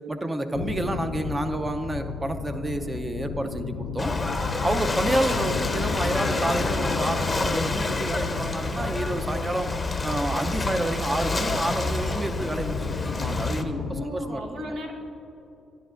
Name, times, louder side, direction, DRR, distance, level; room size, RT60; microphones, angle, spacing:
voice 1, 0.1-4.1 4.6-9.8 10.0-14.7, right 1 dB, 20° right, 8 dB, 0.6 m, -29 dB
sound 1, 0.5-14.1, left 6 dB, 85° left, 0.3 m, -34 dB
Ocean / Boat Water vehicle, 4.0-13.6, left 2 dB, 25° left, 0.6 m, -28 dB
voice 2, 13.9-14.9, equal, 75° right, -1 dB, 1.2 m, -35 dB
11.5 x 10.0 x 2.5 m, 3.0 s
cardioid pair, 90°, 0 cm